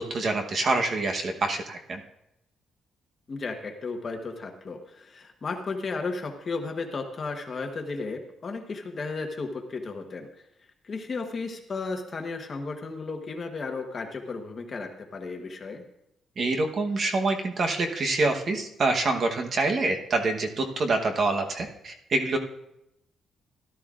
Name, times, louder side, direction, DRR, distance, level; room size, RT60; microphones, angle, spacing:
voice 1, 0.0-2.0 16.4-22.4, right 3 dB, 35° right, 3 dB, 1.0 m, -26 dB
voice 2, 3.3-10.3 10.8-15.8, left 4 dB, 30° left, 4 dB, 1.1 m, -34 dB
17.0 x 12.0 x 2.5 m, 0.83 s
cardioid pair, 175°, 0 cm